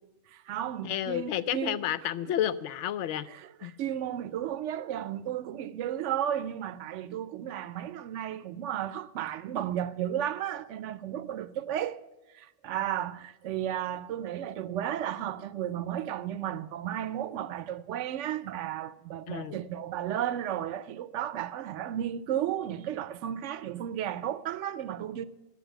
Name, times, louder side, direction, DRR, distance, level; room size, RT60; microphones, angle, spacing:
voice 1, 0.3-1.8 2.2-2.4 3.3-12.0 12.3-25.3, right 10 dB, 75° right, 0.9 m, -34 dB
voice 2, 0.8-3.3 3.6-3.7 19.3-19.6, left 11 dB, 70° left, 0.8 m, -31 dB
11.0 x 8.1 x 7.8 m
omnidirectional pair, 1.3 m